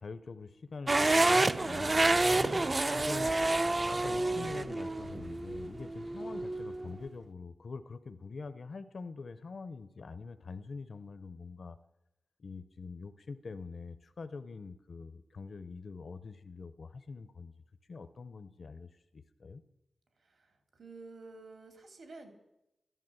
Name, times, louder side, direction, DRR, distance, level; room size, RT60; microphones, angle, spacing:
voice 1, 0.0-3.3 3.8-11.8 12.4-17.5 17.9-19.6, left 4 dB, 55° left, 10 dB, 0.7 m, -45 dB
sound 1, 0.9-6.9, right 2 dB, 25° right, 0.5 m, -29 dB
voice 2, 20.2-22.3, right 3 dB, 70° right, 6 dB, 2.8 m, -51 dB
14.5 x 11.0 x 7.8 m, 0.90 s
wide cardioid pair, 135°, 0 cm